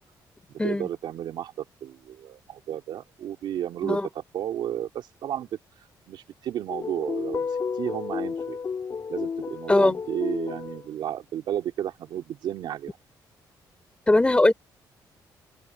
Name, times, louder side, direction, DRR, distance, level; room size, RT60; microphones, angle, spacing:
voice 1, 0.6-5.6 6.1-7.5 7.8-8.6 9.1-13.0, right 11 dB, 80° right, 3.2 m, -32 dB
sound 1, 6.7-10.9, left 5 dB, 45° left, 1.9 m, -31 dB
voice 2, 14.1-14.5, left 2 dB, 15° left, 4.1 m, -20 dB
open air
cardioid pair, 100°, 8 cm